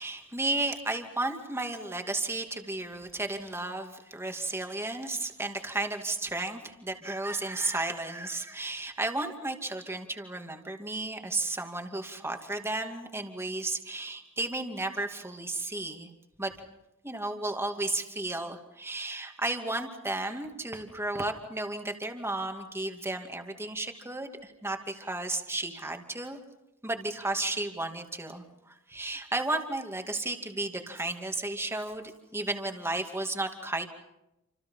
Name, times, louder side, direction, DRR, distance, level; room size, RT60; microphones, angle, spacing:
voice 1, 0.0-16.1 16.4-16.5 17.0-26.4 26.8-33.9, right 2 dB, 10° right, 4 dB, 2.5 m, -33 dB
28.5 x 27.5 x 5.7 m, 0.90 s
head